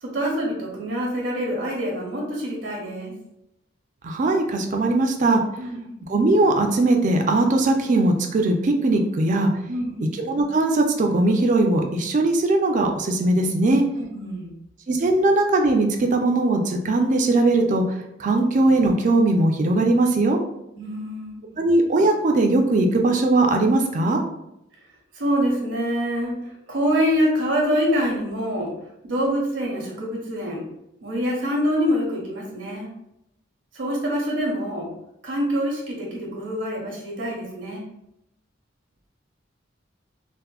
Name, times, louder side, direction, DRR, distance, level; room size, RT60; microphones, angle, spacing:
voice 1, 0.0-3.1 5.6-5.9 9.7-10.1 14.0-14.5 20.8-21.6 25.1-26.3 26.7-28.7 29.0-30.6 31.0-32.9 33.7-34.9 35.2-37.8, equal, 75° right, -2 dB, 0.8 m, -25 dB
voice 2, 4.0-5.4 6.1-9.5 10.0-13.8 14.9-17.8 18.2-20.4 21.6-24.2, right 2 dB, 40° right, 4 dB, 0.4 m, -20 dB
3.5 x 2.1 x 2.3 m, 0.84 s
head